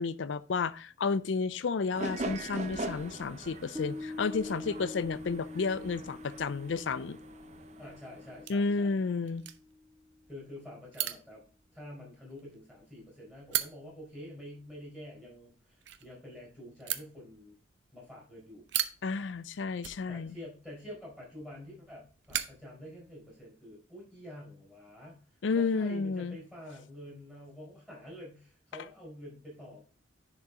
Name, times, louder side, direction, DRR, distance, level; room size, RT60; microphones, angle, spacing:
voice 1, 0.0-7.2 8.5-9.4 19.0-20.3 25.4-26.4, left 4 dB, 75° left, 0.5 m, -31 dB
sound 1, 1.9-8.4, right 2 dB, 35° right, 0.7 m, -42 dB
Piano, 3.7-10.5, left 2 dB, 15° right, 1.1 m, -45 dB
voice 2, 4.4-4.9 7.8-8.9 10.3-11.4 11.7-17.6 17.9-18.6 20.1-25.2 25.5-29.8, left 1 dB, 5° left, 4.8 m, -48 dB
sound 2, 8.3-23.5, right 12 dB, 70° right, 0.6 m, -43 dB
10.5 x 4.5 x 3.7 m
head